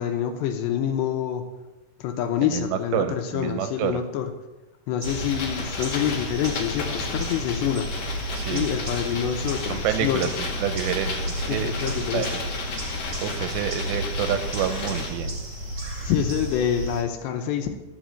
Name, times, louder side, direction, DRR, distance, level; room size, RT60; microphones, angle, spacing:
voice 1, 0.0-1.4 2.0-4.3 4.9-7.9 8.5-10.3 11.6-12.3 16.0-17.7, left 9 dB, 80° left, 5 dB, 2.8 m, -26 dB
voice 2, 2.5-4.0 8.3-8.7 9.7-11.9 12.1-12.4 13.2-15.4, right 9 dB, 85° right, 8 dB, 2.7 m, -28 dB
sound 1, 5.0-15.1, left 4 dB, 60° left, 1.7 m, -34 dB
sound 2, 5.0-17.0, right 1 dB, 40° right, 1.6 m, -32 dB
13.0 x 5.1 x 7.5 m, 1.1 s
omnidirectional pair, 5.3 m